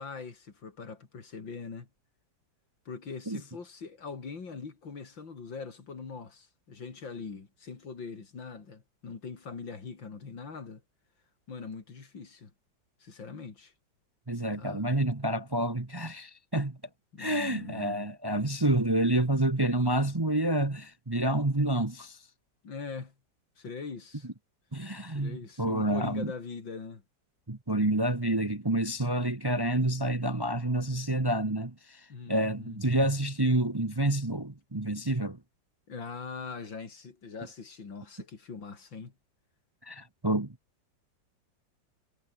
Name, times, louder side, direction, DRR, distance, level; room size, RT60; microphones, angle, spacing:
voice 1, 0.0-1.9 2.9-10.8 11.5-12.5 13.0-13.7 14.6-14.8 17.1-18.0 22.6-23.1 23.6-24.3 25.1-27.0 32.1-32.8 35.9-39.1, left 5 dB, 85° left, 3.9 m, -42 dB
voice 2, 14.3-16.8 17.2-22.2 24.7-26.3 27.5-35.4 39.8-40.6, right 1 dB, 15° right, 1.0 m, -28 dB
omnidirectional pair, 2.0 m